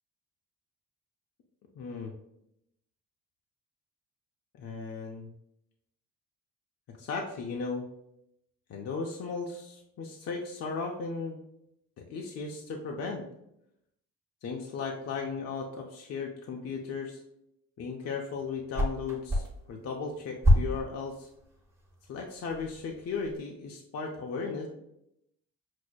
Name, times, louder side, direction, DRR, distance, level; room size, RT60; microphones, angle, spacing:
voice 1, 1.8-2.1 4.5-5.3 7.0-7.8 8.7-11.4 12.1-13.2 14.4-17.2 17.8-21.3 22.1-24.7, left 4 dB, 55° left, 1 dB, 0.6 m, -36 dB
sound 1, 18.4-23.4, equal, 10° right, 0.8 m, -30 dB
6.0 x 2.0 x 2.3 m, 0.80 s
cardioid pair, 90°, 30 cm